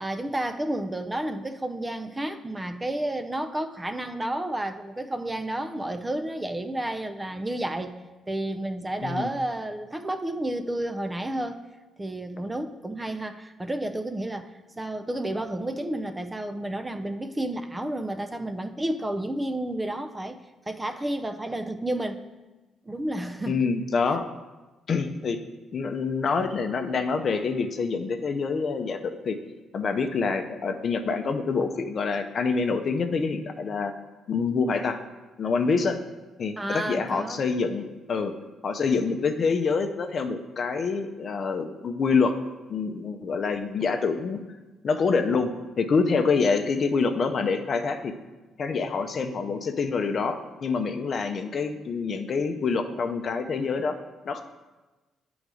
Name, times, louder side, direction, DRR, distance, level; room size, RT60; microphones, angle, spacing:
voice 1, 0.0-8.0 8.3-11.6 12.0-20.4 20.7-22.2 22.8-23.7 36.6-37.4, right 1 dB, 15° right, 7 dB, 0.5 m, -31 dB
voice 2, 23.5-24.3 24.9-25.4 25.7-29.4 29.7-33.9 34.3-35.0 35.4-36.0 36.4-38.3 38.6-42.4 42.7-44.4 44.8-48.1 48.6-54.0 54.2-54.4, left 4 dB, 50° left, 7 dB, 0.6 m, -26 dB
8.8 x 3.9 x 4.8 m, 1.2 s
cardioid pair, 80°, 0 cm